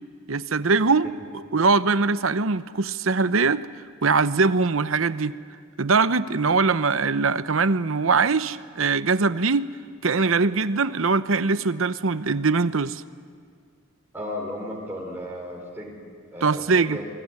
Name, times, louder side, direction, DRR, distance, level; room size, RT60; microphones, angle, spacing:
voice 1, 0.3-1.1 1.5-3.7 4.0-5.3 5.8-9.7 10.0-13.0 16.4-17.0, right 4 dB, 75° right, 14 dB, 0.9 m, -22 dB
voice 2, 14.1-16.0 16.3-17.0, left 1 dB, 10° right, -4 dB, 4.4 m, -34 dB
28.5 x 21.0 x 9.7 m, 2.1 s
head